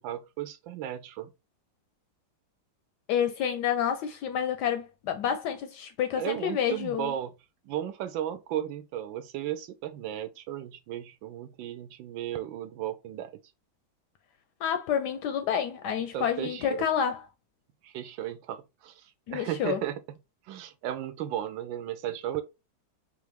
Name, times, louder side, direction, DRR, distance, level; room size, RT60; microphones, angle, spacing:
voice 1, 0.0-1.3 6.2-7.3 7.6-13.4 16.1-16.8 17.8-20.0 20.5-22.4, right 11 dB, 80° right, 1.3 m, -35 dB
voice 2, 3.1-7.1 14.6-17.2 19.3-19.8, left 8 dB, 75° left, 1.0 m, -29 dB
4.4 x 2.5 x 3.3 m
omnidirectional pair, 2.1 m